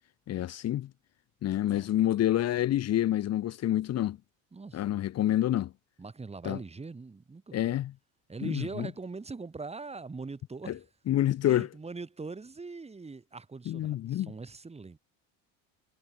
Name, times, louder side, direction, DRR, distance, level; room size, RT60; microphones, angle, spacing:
voice 1, 0.3-0.9 1.4-4.2 4.7-5.7 6.4-6.6 7.5-7.9 8.4-8.9 10.7-10.8 11.1-11.7 13.7-14.3, left 12 dB, 50° left, 1.4 m, -28 dB
voice 2, 4.5-4.9 6.0-7.8 8.3-10.8 11.2-15.0, right 4 dB, 20° right, 4.7 m, -42 dB
supercardioid pair, 105°, 34 cm